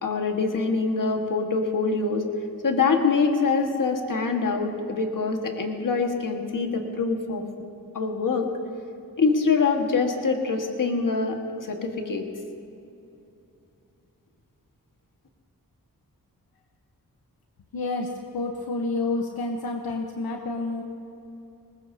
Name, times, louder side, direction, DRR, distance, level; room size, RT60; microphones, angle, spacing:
voice 1, 0.0-2.2 2.6-7.4 7.9-8.5 9.2-12.2, left 4 dB, 60° left, 3 dB, 1.6 m, -24 dB
voice 2, 17.7-20.8, left 3 dB, 85° left, 2 dB, 1.0 m, -29 dB
20.5 x 19.5 x 2.8 m, 2.8 s
wide cardioid pair, 80°, 36 cm